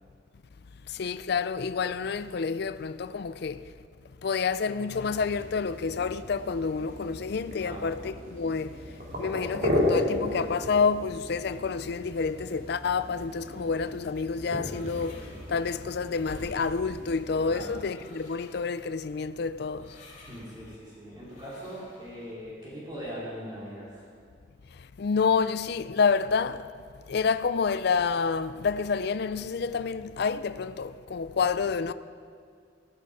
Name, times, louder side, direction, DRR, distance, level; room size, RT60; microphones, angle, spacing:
voice 1, 0.9-3.6 4.2-20.0 24.7-26.7 27.1-31.9, left 5 dB, 60° left, 0.4 m, -29 dB
sound 1, 4.9-17.8, left 1 dB, 50° right, 2.6 m, -35 dB
sound 2, 14.6-22.3, left 1 dB, 40° left, 2.1 m, -52 dB
voice 2, 20.3-24.0 31.5-31.7, equal, 25° right, 2.9 m, -41 dB
14.5 x 13.5 x 4.8 m
head